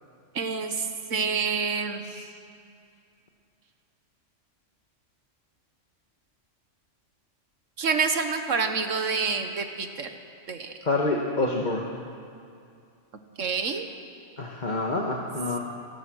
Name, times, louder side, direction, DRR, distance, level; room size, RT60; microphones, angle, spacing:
voice 1, 0.4-2.1 7.8-10.1 10.5-10.7 13.4-13.9, right 5 dB, 90° right, 6 dB, 1.7 m, -27 dB
voice 2, 10.8-12.0 14.4-15.6, left 2 dB, 40° left, -1 dB, 1.7 m, -27 dB
29.0 x 18.5 x 6.3 m, 2.4 s
omnidirectional pair, 1.3 m